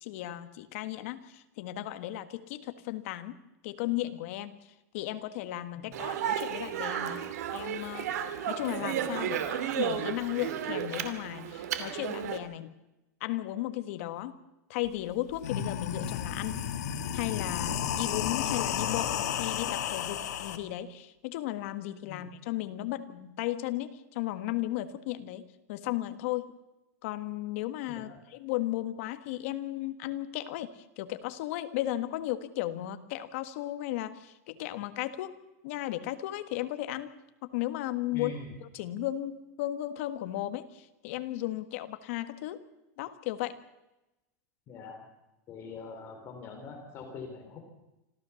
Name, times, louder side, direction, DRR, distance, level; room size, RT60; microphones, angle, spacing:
voice 1, 0.0-3.4 3.6-7.2 7.5-8.2 8.5-9.5 9.8-12.7 13.2-14.4 14.7-16.6 17.1-26.5 27.0-37.1 37.4-38.3 38.6-42.6 43.0-43.6, left 14 dB, 55° left, 10 dB, 1.6 m, -35 dB
voice 2, 5.8-6.1 22.0-22.2 27.9-28.2 38.1-38.5 44.7-45.0 45.5-47.6, left 5 dB, 30° left, 4 dB, 3.7 m, -43 dB
Speech, 5.9-12.4, right 9 dB, 75° right, 2.7 m, -33 dB
sound 1, 14.8-14.9 15.3-20.6, left 9 dB, 90° left, 2.5 m, -32 dB
26.5 x 15.0 x 7.2 m, 0.97 s
supercardioid pair, 165°, 9 cm